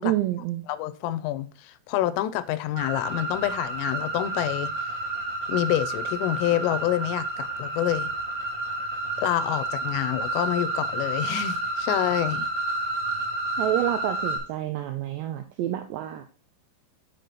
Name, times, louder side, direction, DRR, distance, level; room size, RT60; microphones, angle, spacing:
voice 1, 0.0-0.6 13.6-16.3, right 13 dB, 90° right, 2.4 m, -28 dB
voice 2, 0.7-4.7 5.5-8.1 9.2-12.5, left 13 dB, 85° left, 3.2 m, -27 dB
sound 1, 2.8-14.4, right 2 dB, 40° right, 3.1 m, -30 dB
6.7 x 6.4 x 4.0 m
omnidirectional pair, 5.7 m